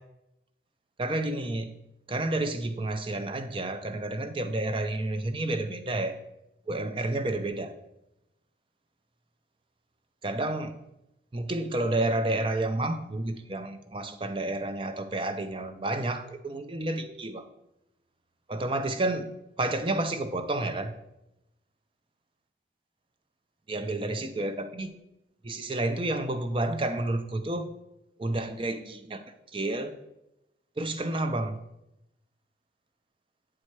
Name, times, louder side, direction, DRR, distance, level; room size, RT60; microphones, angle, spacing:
voice 1, 1.0-1.7 2.1-6.2 6.7-7.7 10.2-10.8 11.3-17.5 18.5-19.3 19.6-20.9 23.7-25.0 25.4-27.7 28.2-29.2 29.5-30.0 30.8-31.6, right 2 dB, 30° right, 8 dB, 0.5 m, -30 dB
7.6 x 4.3 x 4.7 m, 0.87 s
head